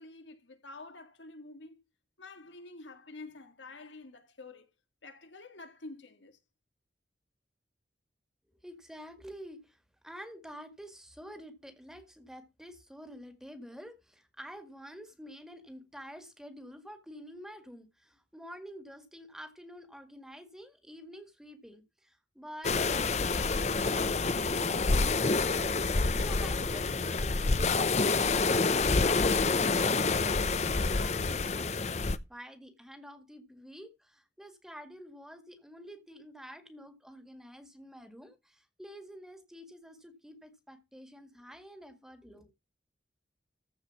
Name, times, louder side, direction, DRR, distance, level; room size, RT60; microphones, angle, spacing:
voice 1, 0.0-1.8 2.2-4.7 5.0-6.4, left 3 dB, 90° left, 2.0 m, -48 dB
voice 2, 8.6-28.6 29.0-30.4 30.9-31.7 32.3-42.5, equal, 5° right, 1.9 m, -49 dB
sound 1, 22.6-32.2, left 3 dB, 35° left, 0.7 m, -28 dB
14.5 x 4.9 x 6.9 m
head